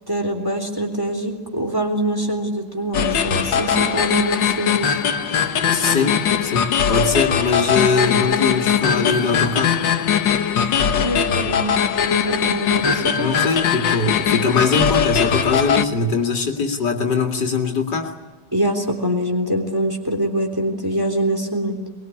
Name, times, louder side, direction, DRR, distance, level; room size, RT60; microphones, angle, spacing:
voice 1, 0.1-5.0 11.0-11.7 12.1-13.4 18.5-21.8, right 1 dB, 10° right, 3 dB, 3.4 m, -24 dB
sound 1, 2.9-15.8, left 8 dB, 90° left, 1.9 m, -20 dB
voice 2, 5.7-9.8 13.2-18.1, left 4 dB, 70° left, 3 dB, 2.9 m, -21 dB
22.5 x 21.5 x 9.5 m, 1.3 s
omnidirectional pair, 1.9 m